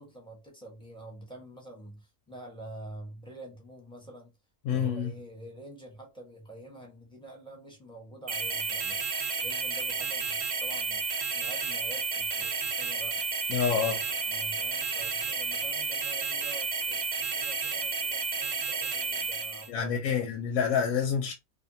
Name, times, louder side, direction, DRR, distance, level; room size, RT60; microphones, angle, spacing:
voice 1, 0.0-4.3 4.7-9.0 9.4-11.0 11.3-13.3 14.1-20.3, right 2 dB, 5° left, 0.8 m, -47 dB
voice 2, 4.6-5.1 13.5-14.0 19.7-21.3, left 7 dB, 85° left, 1.0 m, -27 dB
sound 1, 8.3-19.7, right 4 dB, 45° right, 0.6 m, -31 dB
2.6 x 2.4 x 2.6 m
omnidirectional pair, 1.4 m